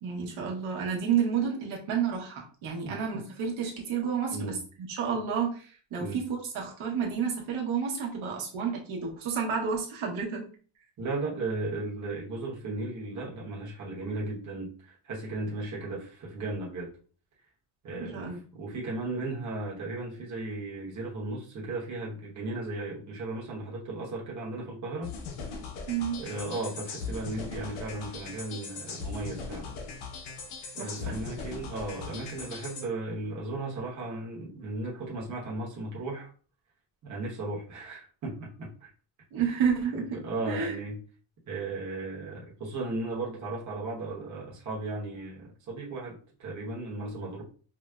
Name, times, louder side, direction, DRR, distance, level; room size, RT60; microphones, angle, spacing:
voice 1, 0.0-10.4 18.0-18.4 25.9-26.2 30.8-31.2 39.3-40.8, right 6 dB, 70° right, -1 dB, 1.0 m, -30 dB
voice 2, 11.0-16.9 17.8-25.1 26.2-29.8 30.7-36.3 37.0-38.9 39.4-39.5 39.9-41.0 41.5-47.4, right 2 dB, 35° right, -4 dB, 1.0 m, -36 dB
sound 1, 25.0-32.8, left 4 dB, 90° left, 0.8 m, -39 dB
4.7 x 2.0 x 2.3 m, 0.40 s
cardioid pair, 150°, 50 cm